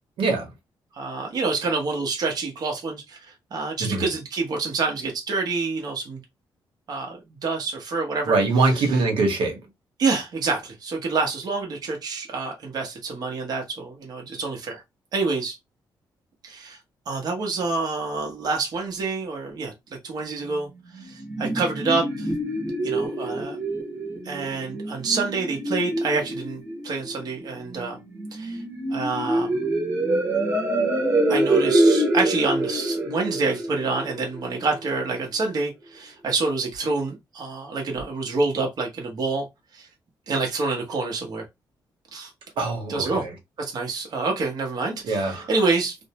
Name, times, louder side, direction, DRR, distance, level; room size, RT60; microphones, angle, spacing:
voice 1, 0.9-3.2 3.5-6.2 6.9-8.4 8.7-8.9 10.0-14.8 15.1-15.6 16.4-16.8 17.1-19.7 20.0-20.7 21.0-22.3 22.8-23.6 24.2-28.0 28.3-28.6 28.9-29.5 31.3-39.5 39.7-39.9 40.3-41.4 42.1-42.3 42.9-43.2 43.6-46.0, right 3 dB, 50° right, 0.8 m, -27 dB
voice 2, 8.3-9.6 42.6-43.3 45.1-45.5, right 3 dB, 85° right, 1.0 m, -23 dB
sound 1, 20.9-34.9, right 1 dB, 30° right, 1.0 m, -25 dB
2.6 x 2.0 x 2.8 m
cardioid pair, 135°, 8 cm